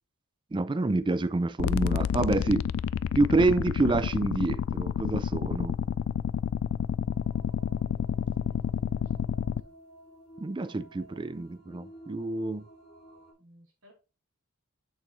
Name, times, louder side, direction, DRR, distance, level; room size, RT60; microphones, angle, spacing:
voice 1, 0.5-2.7 3.1-5.8 10.4-12.6, right 2 dB, 20° right, 0.3 m, -27 dB
sound 1, 1.6-9.6, left 7 dB, 70° left, 0.3 m, -29 dB
sound 2, 7.0-13.3, right 1 dB, 30° left, 3.1 m, -53 dB
voice 2, 8.5-9.4 13.4-13.9, equal, 70° right, 3.4 m, -60 dB
7.2 x 6.3 x 3.1 m
head